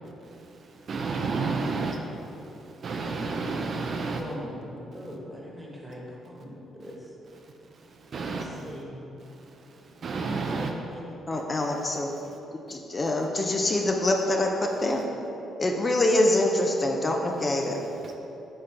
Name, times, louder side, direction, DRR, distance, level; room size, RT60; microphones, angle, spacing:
voice 1, 0.2-4.2 4.9-5.1 6.8-6.9 7.3-7.4 7.7-8.8 9.2-9.4 9.7-10.7 12.2-12.4 18.0-18.1, right 4 dB, 50° right, 3 dB, 0.5 m, -32 dB
voice 2, 4.1-7.0 8.2-9.0 10.5-11.0, equal, 15° right, -3 dB, 1.4 m, -41 dB
voice 3, 11.3-12.1 12.7-15.0 15.6-17.8, left 1 dB, 30° left, 1 dB, 0.6 m, -25 dB
7.7 x 3.8 x 4.4 m, 2.9 s
cardioid pair, 90°, 0 cm